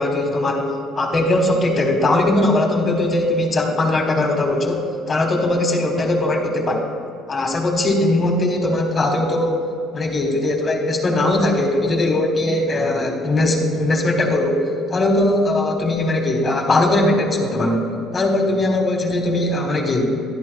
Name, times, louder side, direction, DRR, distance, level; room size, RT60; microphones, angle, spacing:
voice 1, 0.0-6.9 7.3-9.7 9.9-20.0, left 2 dB, 30° left, 2 dB, 1.5 m, -20 dB
11.5 x 11.0 x 2.3 m, 2.5 s
cardioid pair, 120°, 0 cm